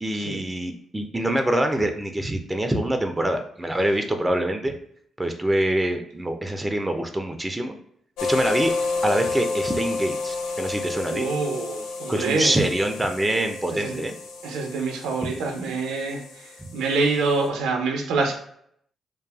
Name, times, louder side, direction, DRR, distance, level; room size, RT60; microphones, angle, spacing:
voice 1, 0.0-4.8 5.2-7.8 8.3-8.7 9.0-11.3 12.1-14.1, right 1 dB, 15° right, 6 dB, 0.4 m, -25 dB
sound 1, 8.2-17.5, left 3 dB, 85° left, 0.4 m, -31 dB
voice 2, 11.1-12.6 13.7-14.0 14.4-18.3, right 3 dB, 85° right, 3 dB, 0.5 m, -26 dB
2.6 x 2.3 x 2.3 m, 0.68 s
supercardioid pair, 50°, 0 cm